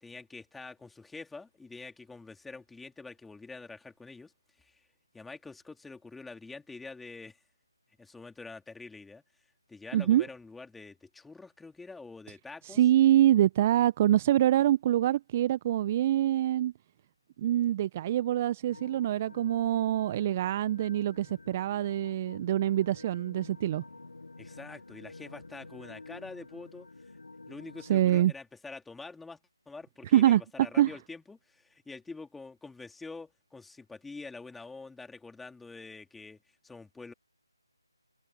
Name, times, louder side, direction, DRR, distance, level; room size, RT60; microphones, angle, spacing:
voice 1, 0.0-4.3 4.6-4.9 5.1-7.4 8.0-9.2 9.7-12.8 24.4-26.9 27.5-29.4 29.6-36.4 36.6-37.1, left 3 dB, 5° left, 3.4 m, -46 dB
voice 2, 9.9-10.2 12.6-16.7 17.4-23.8 27.9-28.3 30.1-30.4 30.8-30.9, right 12 dB, 25° right, 0.9 m, -25 dB
sound 1, 18.7-28.2, left 3 dB, 65° left, 5.8 m, -50 dB
open air
figure-of-eight pair, 155°, 2 cm